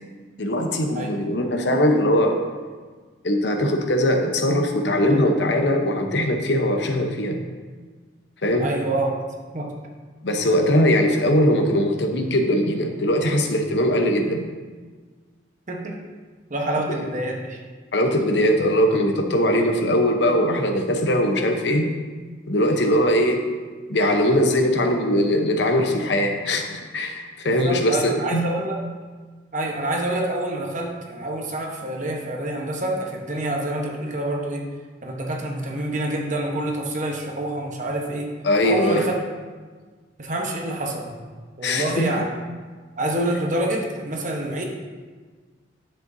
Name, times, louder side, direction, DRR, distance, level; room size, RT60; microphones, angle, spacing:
voice 1, 0.4-2.4 3.2-7.4 8.4-8.7 10.2-14.5 17.0-17.1 17.9-21.9 22.5-23.4 23.9-28.5 38.4-39.0 41.6-42.1, equal, 65° left, 3 dB, 0.9 m, -21 dB
voice 2, 8.6-9.1 9.5-9.7 15.7-16.0 16.5-17.6 27.4-28.8 29.5-34.7 35.0-38.3 38.6-39.1 40.2-41.1 41.6-42.3 43.0-44.6, right 1 dB, 40° right, 1 dB, 1.0 m, -27 dB
9.9 x 7.7 x 2.7 m, 1.4 s
head